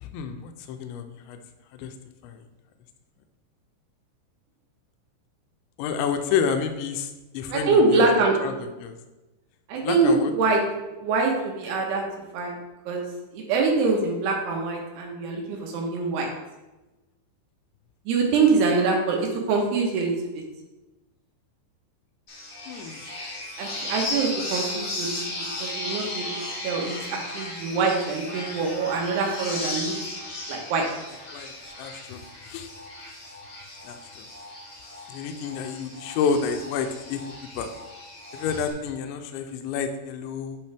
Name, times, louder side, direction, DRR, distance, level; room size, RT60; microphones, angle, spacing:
voice 1, 0.0-1.4 1.7-1.9 2.2-2.4 5.8-8.5 8.8-8.9 9.8-10.3 22.7-23.0 31.3-31.5 31.8-32.7 33.8-34.3 35.1-37.2 37.6-37.7 38.3-40.6, left 6 dB, 85° left, 6 dB, 2.9 m, -29 dB
voice 2, 7.5-8.6 9.7-10.6 11.0-12.0 12.3-12.6 12.9-13.0 13.3-16.3 18.1-20.4 23.6-26.3 26.6-29.9 30.5-30.8, right 4 dB, 75° right, 0 dB, 3.0 m, -24 dB
sound 1, 22.3-38.7, left 2 dB, 45° left, 1.0 m, -36 dB
8.5 x 6.1 x 3.4 m, 1.1 s
omnidirectional pair, 5.2 m